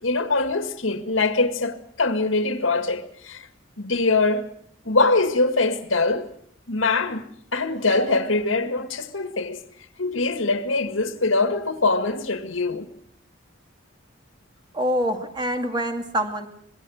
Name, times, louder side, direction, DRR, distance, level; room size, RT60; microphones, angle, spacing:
voice 1, 0.0-3.5 3.8-4.5 4.8-6.3 6.7-9.6 10.0-12.9, left 3 dB, 85° left, 2.0 m, -23 dB
voice 2, 14.7-16.5, equal, 25° right, 2.4 m, -25 dB
26.0 x 20.5 x 6.5 m
head